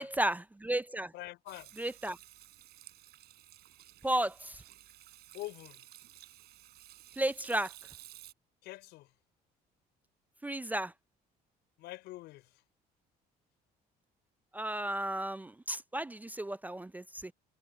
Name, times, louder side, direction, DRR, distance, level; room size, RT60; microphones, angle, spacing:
voice 1, 0.0-1.1 1.8-2.2 4.0-4.6 7.2-7.7 10.4-10.9 14.5-17.3, right 1 dB, 10° right, 0.4 m, -33 dB
voice 2, 1.1-1.7 5.3-5.8 8.6-9.1 11.8-12.4, left 18 dB, 90° left, 5.3 m, -44 dB
Hands / Sink (filling or washing), 1.5-8.3, right 14 dB, 75° right, 3.9 m, -54 dB
cardioid pair, 110°, 17 cm